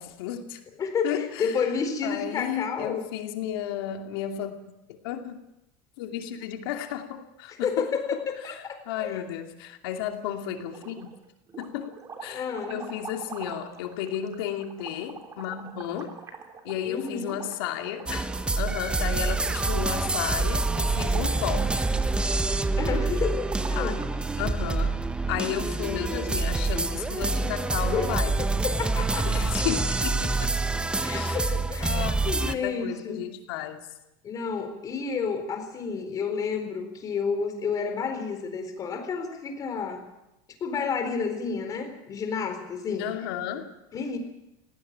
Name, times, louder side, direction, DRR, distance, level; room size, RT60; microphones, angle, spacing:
voice 1, 0.0-0.6 1.0-1.6 2.0-4.7 5.0-5.4 6.0-8.2 8.9-11.0 11.6-16.2 16.6-18.3 18.6-21.9 23.8-23.9 24.4-25.0 25.3-28.4 29.2-30.6 31.1-33.8 43.0-43.8, left 10 dB, 85° left, 5 dB, 2.6 m, -33 dB
voice 2, 0.8-3.0 7.6-9.2 12.3-12.9 16.8-17.4 22.8-24.0 27.9-28.1 28.4-29.3 31.0-33.2 34.2-40.1 40.6-43.1 43.9-44.2, left 5 dB, 30° left, 6 dB, 4.3 m, -30 dB
sound 1, 10.6-11.2 11.5-24.2, right 5 dB, 25° right, 3.4 m, -44 dB
sound 2, 18.1-32.5, right 3 dB, 10° right, 0.9 m, -26 dB
19.0 x 17.0 x 8.9 m, 0.92 s
supercardioid pair, 145°, 12 cm